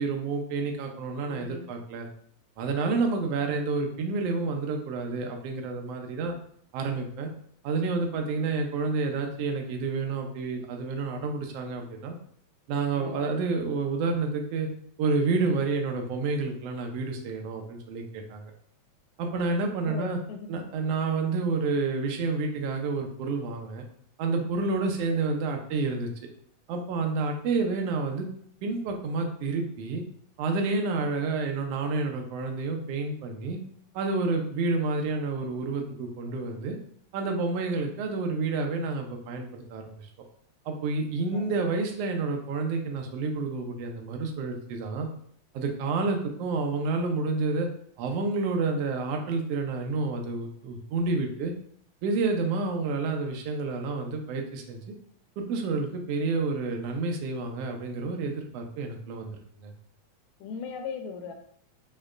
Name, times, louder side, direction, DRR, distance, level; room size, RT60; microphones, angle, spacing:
voice 1, 0.0-2.1 2.6-6.3 6.7-7.3 7.6-12.2 12.7-14.7 15.0-18.5 19.2-20.2 20.5-23.8 24.2-26.1 26.7-28.3 28.6-30.0 30.4-33.6 33.9-36.8 37.1-40.1 40.6-45.1 45.5-47.7 48.0-51.5 52.0-54.8 55.4-59.7, right 3 dB, 70° right, 2 dB, 1.6 m, -29 dB
voice 2, 1.3-1.7 12.9-13.3 19.8-20.5 24.8-25.1 30.8-31.1 41.3-41.6 60.4-61.3, left 6 dB, 80° left, 5 dB, 1.9 m, -39 dB
6.4 x 2.8 x 2.4 m, 0.62 s
omnidirectional pair, 3.3 m